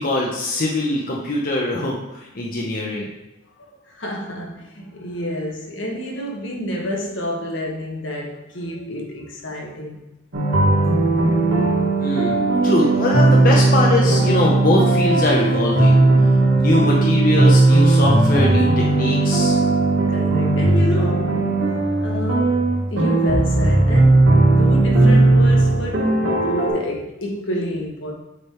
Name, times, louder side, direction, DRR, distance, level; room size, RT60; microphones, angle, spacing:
voice 1, 0.0-3.1 12.0-16.1 16.5-19.6, left 2 dB, 45° left, 0.7 m, -22 dB
voice 2, 3.7-10.0 16.5-16.6 20.1-21.3 22.0-28.1, equal, 75° left, 1.2 m, -29 dB
sound 1, 10.3-26.7, right 2 dB, 85° right, 1.4 m, -17 dB
6.5 x 3.7 x 4.3 m
head